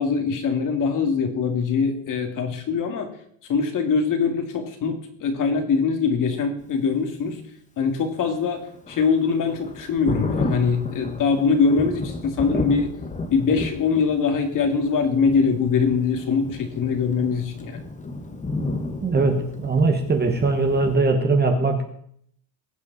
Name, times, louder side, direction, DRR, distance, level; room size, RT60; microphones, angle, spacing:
voice 1, 0.0-3.1 3.5-7.4 7.8-8.6 8.9-12.9 13.3-17.8, left 5 dB, 40° left, 5 dB, 2.4 m, -22 dB
Thunder, 8.1-21.0, left 2 dB, 15° left, 1.4 m, -32 dB
voice 2, 19.0-21.8, right 3 dB, 20° right, 4 dB, 1.5 m, -21 dB
20.5 x 8.7 x 4.1 m, 0.66 s
cardioid pair, 155°, 48 cm